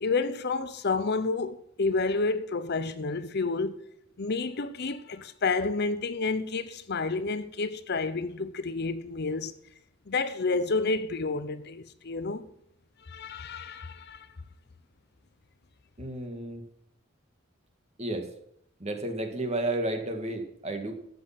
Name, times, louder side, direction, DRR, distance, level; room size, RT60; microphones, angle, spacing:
voice 1, 0.0-3.9 4.2-9.5 10.1-12.4 13.1-14.3, left 3 dB, 55° left, 0.7 m, -30 dB
voice 2, 16.0-16.6 18.0-18.3 18.8-20.9, right 2 dB, 30° right, 1.9 m, -32 dB
13.0 x 8.5 x 5.9 m
head